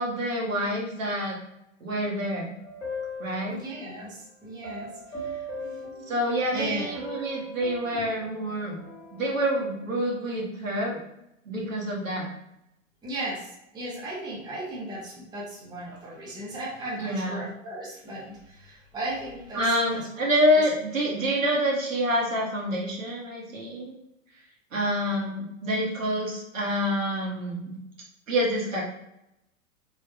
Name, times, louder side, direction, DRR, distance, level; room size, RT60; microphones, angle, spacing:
voice 1, 0.0-1.4 1.8-2.5 3.2-3.6 6.1-8.8 9.1-11.0 11.4-12.3 17.0-17.4 19.5-23.9 24.7-27.7 28.3-28.8, equal, 75° right, -2 dB, 1.1 m, -27 dB
sound 1, 2.6-4.0 4.6-6.6 6.9-9.9, equal, 75° left, 1.0 m, -40 dB
voice 2, 3.5-6.1 6.5-6.9 7.9-8.0 13.0-13.5 13.7-20.1, right 1 dB, 10° right, -6 dB, 0.7 m, -36 dB
3.3 x 2.3 x 2.3 m, 0.84 s
figure-of-eight pair, 95°, 40 cm